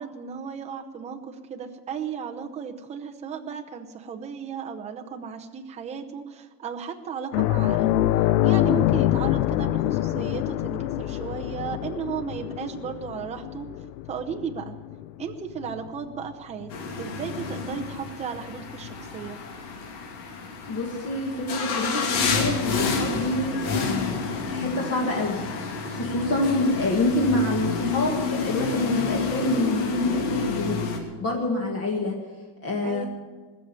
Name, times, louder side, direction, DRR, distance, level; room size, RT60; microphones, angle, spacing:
voice 1, 0.0-8.0 8.4-13.7 14.1-14.8 15.2-16.7 17.0-19.4 32.8-33.0, right 7 dB, 15° right, 4 dB, 0.7 m, -35 dB
sound 1, 7.3-16.3 16.6-16.8 18.8-18.9, left 15 dB, 75° left, 0.7 m, -25 dB
sound 2, 16.7-31.0, left 5 dB, 60° left, 2.9 m, -29 dB
voice 2, 20.7-25.4 25.9-32.2 32.6-33.1, left 1 dB, 30° left, -1 dB, 1.9 m, -27 dB
20.5 x 7.2 x 9.6 m, 1.4 s
cardioid pair, 175°, 48 cm